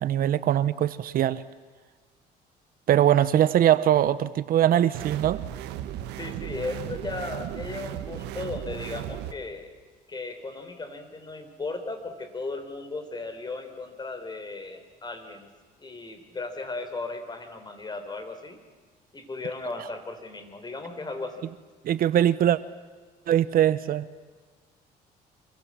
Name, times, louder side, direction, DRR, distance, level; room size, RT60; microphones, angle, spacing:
voice 1, 0.0-1.4 2.9-5.4 21.8-22.6 23.3-24.1, right 11 dB, 60° right, 15 dB, 0.9 m, -21 dB
sound 1, 4.9-9.3, right 12 dB, 90° right, 1.5 m, -36 dB
voice 2, 6.2-9.7 10.1-15.5 15.8-18.6 19.1-21.5, left 3 dB, 25° left, 8 dB, 4.0 m, -36 dB
26.0 x 24.5 x 7.6 m, 1.5 s
cardioid pair, 110°, 17 cm